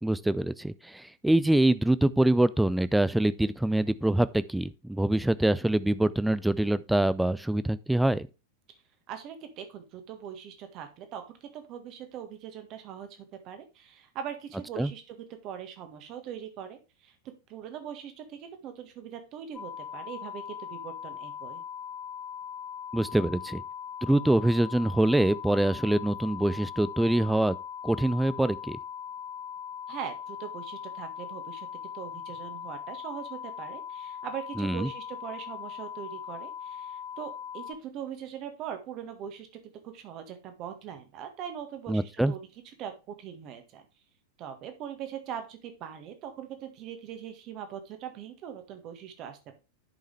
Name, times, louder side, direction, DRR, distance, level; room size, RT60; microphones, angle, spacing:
voice 1, 0.0-8.3 14.8-14.9 22.9-23.6 24.0-27.6 27.8-28.8 34.6-34.9 41.9-42.3, right 1 dB, 5° right, 0.4 m, -25 dB
voice 2, 9.1-17.1 17.5-21.6 29.9-31.7 31.9-42.4 42.8-43.8 44.4-49.6, right 9 dB, 35° right, 1.6 m, -41 dB
sound 1, 19.5-37.7, left 8 dB, 25° left, 2.0 m, -40 dB
10.5 x 5.5 x 3.3 m
figure-of-eight pair, 90°, 0 cm